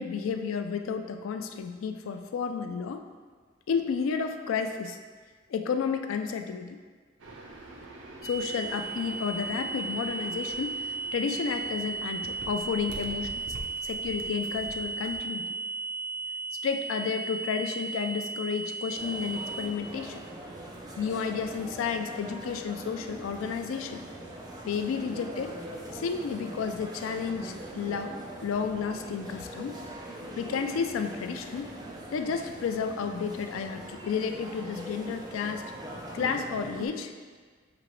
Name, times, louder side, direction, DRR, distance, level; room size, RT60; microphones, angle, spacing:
voice 1, 0.0-3.0 3.7-5.0 5.5-6.8 8.2-13.4 13.8-15.5 16.6-20.2 21.0-24.0 24.6-25.6 25.9-29.8 30.4-31.7 32.1-35.7 36.1-37.1, left 6 dB, 90° left, 7 dB, 0.3 m, -32 dB
sound 1, 7.2-15.2, right 1 dB, 70° right, 0.6 m, -46 dB
sound 2, 8.2-19.6, right 4 dB, 45° right, 0.9 m, -35 dB
sound 3, 19.0-36.9, right 1 dB, 20° right, 0.4 m, -42 dB
6.0 x 2.9 x 3.0 m, 1.5 s
head